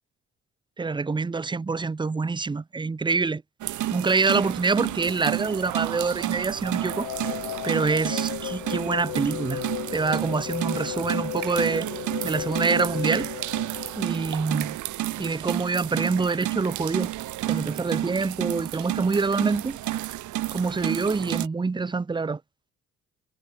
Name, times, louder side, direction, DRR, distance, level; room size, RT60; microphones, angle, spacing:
voice 1, 0.8-3.4 3.9-7.1 7.6-9.6 9.9-11.9 12.2-13.3 14.0-14.8 15.2-17.1 17.5-19.8 20.5-22.4, right 4 dB, 15° right, 0.6 m, -26 dB
sound 1, 3.6-21.5, right 15 dB, 75° right, 0.9 m, -31 dB
sound 2, 6.7-14.7, left 18 dB, 85° left, 0.7 m, -35 dB
cardioid pair, 90°, 30 cm